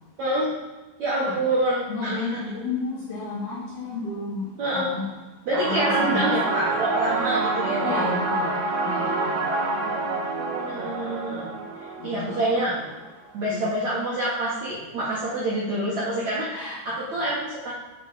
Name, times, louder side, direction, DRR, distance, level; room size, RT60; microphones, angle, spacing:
voice 1, 0.2-0.5 1.0-2.3 4.6-4.9 5.4-8.2 9.8-10.1 10.4-11.5 11.8-12.8 13.3-17.7, right 1 dB, 65° right, -7 dB, 1.8 m, -27 dB
voice 2, 1.9-5.1 5.7-6.3 7.8-9.6 12.0-12.4 13.5-13.7 16.5-16.8, left 3 dB, 70° left, -4 dB, 2.5 m, -32 dB
sound 1, 5.5-13.1, right 3 dB, 80° right, 3.4 m, -27 dB
7.8 x 4.9 x 5.0 m, 1.2 s
omnidirectional pair, 5.5 m